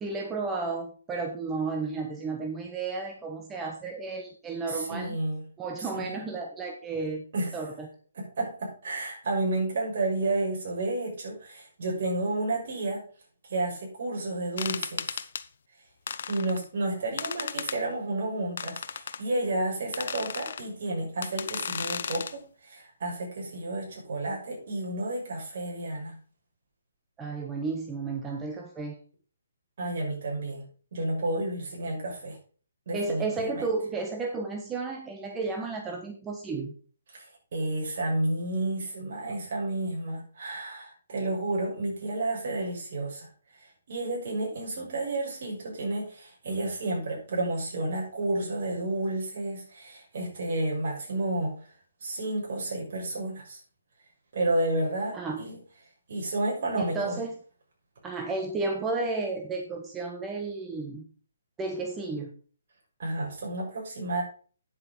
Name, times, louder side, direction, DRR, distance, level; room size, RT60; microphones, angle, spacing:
voice 1, 0.0-5.2 5.6-7.2 7.5-7.9 27.2-28.9 32.9-36.7 55.1-55.4 56.8-57.4 58.0-61.1 61.6-62.3, right 3 dB, 10° right, 2 dB, 1.1 m, -32 dB
voice 2, 4.7-5.4 5.8-6.1 7.3-7.6 8.2-13.0 13.5-15.2 16.3-26.2 29.8-30.6 30.9-32.4 32.9-33.7 37.1-37.2 37.5-43.3 43.9-51.6 52.0-53.6 54.3-55.6 56.1-57.2 63.0-64.2, right 2 dB, 55° right, -2 dB, 6.5 m, -31 dB
sound 1, 14.6-15.4 16.1-16.6 17.2-17.8 18.6-19.2 19.9-20.6 21.2-22.3, left 7 dB, 55° left, 0.8 m, -34 dB
9.6 x 7.8 x 5.3 m, 0.41 s
hypercardioid pair, 165°, 0 cm